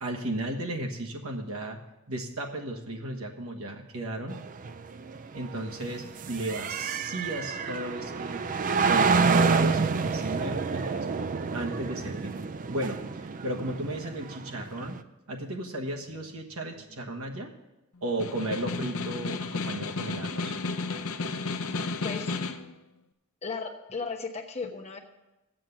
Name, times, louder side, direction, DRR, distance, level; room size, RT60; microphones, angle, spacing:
voice 1, 0.0-1.8 2.1-4.4 5.3-8.5 8.9-11.1 11.5-12.4 12.7-15.0 15.3-17.5 18.0-20.5, right 1 dB, 70° right, 2 dB, 1.3 m, -34 dB
sound 1, 4.3-15.0, right 5 dB, 35° right, 0.4 m, -28 dB
Snare drum, 18.1-22.7, left 3 dB, 70° left, 0.7 m, -33 dB
voice 2, 22.0-22.3 23.4-25.0, left 4 dB, 30° left, 2 dB, 1.0 m, -35 dB
7.7 x 7.3 x 7.9 m, 0.97 s
head